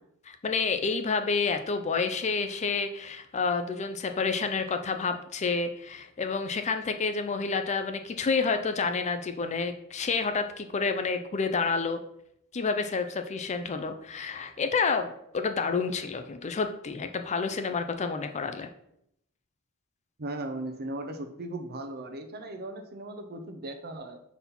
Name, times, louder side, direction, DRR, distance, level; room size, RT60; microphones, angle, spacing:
voice 1, 0.3-12.0 12.5-18.7, left 4 dB, 30° left, 8 dB, 0.4 m, -29 dB
voice 2, 20.2-24.2, right 2 dB, 45° right, 6 dB, 0.7 m, -37 dB
4.2 x 4.2 x 5.4 m, 0.74 s
head